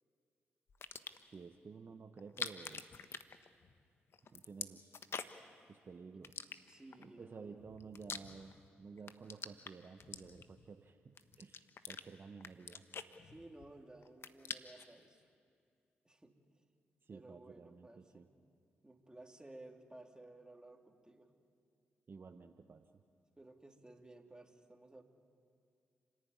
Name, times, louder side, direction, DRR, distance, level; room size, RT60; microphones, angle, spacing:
sound 1, 0.7-1.3 2.2-3.9 4.1-5.5 6.2-7.0 7.6-8.7 9.0-10.7 11.2-12.0 12.4-13.7 14.0-14.9, left 6 dB, 55° left, 1.1 m, -46 dB
voice 1, 1.2-2.9 4.3-5.0 5.7-6.5 7.0-12.8 17.0-18.3 22.1-23.0, right 5 dB, 50° right, 7 dB, 1.0 m, -53 dB
voice 2, 6.7-7.6 13.2-15.3 16.0-16.6 17.1-18.3 18.8-21.3 23.4-25.0, right 2 dB, 15° right, 3 dB, 3.0 m, -57 dB
30.0 x 11.0 x 9.7 m, 2.3 s
hypercardioid pair, 45°, 5 cm